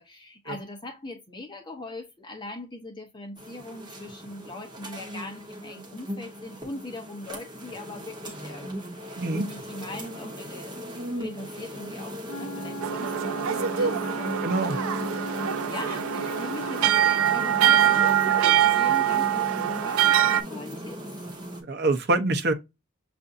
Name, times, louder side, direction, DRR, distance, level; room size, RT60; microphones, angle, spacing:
voice 1, 0.0-10.8 11.2-21.0, left 2 dB, 20° left, 0.8 m, -41 dB
sound 1, 3.4-21.6, equal, 20° right, 1.0 m, -37 dB
Wind instrument woodwind instrument, 12.3-17.1, equal, 60° left, 0.5 m, -37 dB
sound 2, 12.8-20.4, right 10 dB, 65° right, 0.3 m, -23 dB
voice 2, 14.4-14.8 21.6-22.5, right 2 dB, 50° right, 0.7 m, -25 dB
6.7 x 2.5 x 2.5 m
head